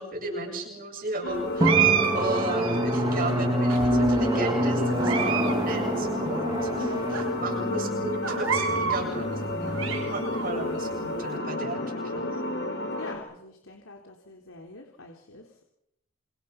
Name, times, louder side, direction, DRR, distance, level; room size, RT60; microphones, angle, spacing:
voice 1, 0.0-1.9 2.1-12.4, right 2 dB, 40° right, 3 dB, 8.0 m, -35 dB
sound 1, 1.2-13.2, left 1 dB, 50° left, 5.0 m, -31 dB
Drum, 1.6-10.9, equal, 20° right, 2.8 m, -27 dB
sound 2, 1.6-3.0 3.7-4.4 4.9-5.6 5.8-5.9 6.6-6.7 7.1-7.2 8.2-9.0 9.5-10.5, right 7 dB, 70° right, 5.1 m, -28 dB
voice 2, 13.0-15.6, left 3 dB, 75° left, 2 dB, 3.5 m, -46 dB
28.0 x 27.0 x 5.9 m, 0.81 s
head